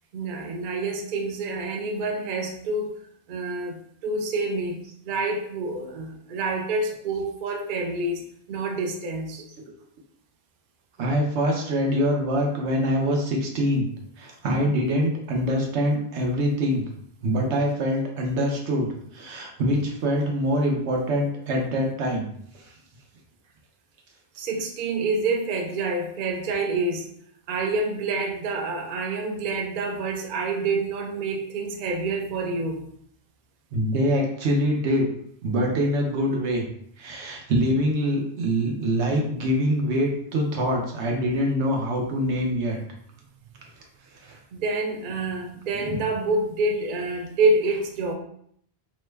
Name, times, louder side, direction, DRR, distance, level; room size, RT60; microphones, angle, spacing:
voice 1, 0.1-2.9 3.3-4.8 5.0-8.2 8.5-9.4 24.4-27.1 27.5-32.8 44.5-48.1, right 3 dB, 60° right, 3 dB, 0.6 m, -27 dB
voice 2, 11.0-13.9 14.2-16.8 17.2-18.9 19.1-22.3 33.7-35.0 35.4-36.6 37.0-42.8 44.2-44.3 45.8-45.9, equal, 90° right, 0 dB, 1.0 m, -24 dB
2.9 x 2.2 x 3.2 m, 0.66 s
omnidirectional pair, 1.1 m